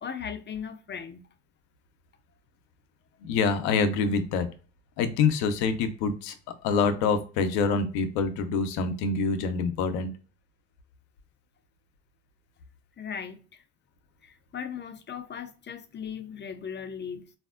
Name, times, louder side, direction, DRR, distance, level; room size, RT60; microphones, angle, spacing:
voice 1, 0.0-1.3 13.0-13.6 14.2-17.3, left 7 dB, 30° left, 0.4 m, -38 dB
voice 2, 3.2-4.5 5.0-6.4 6.6-10.1, left 5 dB, 85° left, 0.5 m, -26 dB
3.4 x 2.5 x 2.4 m
supercardioid pair, 65°, 35 cm